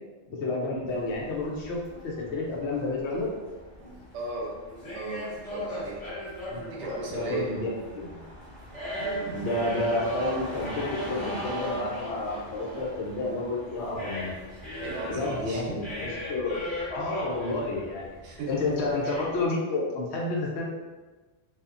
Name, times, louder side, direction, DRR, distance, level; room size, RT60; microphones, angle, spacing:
voice 1, 0.4-3.3 6.5-6.6 7.1-8.2 9.3-14.3 15.1-16.6 16.9-18.2 18.5-20.7, left 2 dB, 75° left, -3 dB, 0.9 m, -30 dB
sound 1, 0.9-19.4, equal, 25° left, 1.2 m, -38 dB
voice 2, 4.1-4.6 4.9-6.0 6.7-7.6 9.0-9.5 14.8-15.9 18.2-18.7, right 4 dB, 85° right, -3 dB, 0.9 m, -36 dB
2.7 x 2.4 x 2.4 m, 1.3 s
omnidirectional pair, 1.2 m